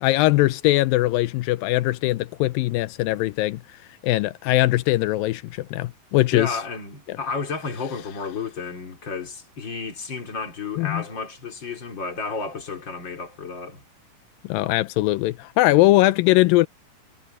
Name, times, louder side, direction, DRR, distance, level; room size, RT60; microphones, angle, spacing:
voice 1, 0.0-3.6 4.0-6.6 10.8-11.0 14.5-16.7, left 18 dB, 90° left, 2.4 m, -20 dB
voice 2, 6.3-13.8, left 4 dB, 35° left, 3.9 m, -32 dB
omnidirectional pair, 4.0 m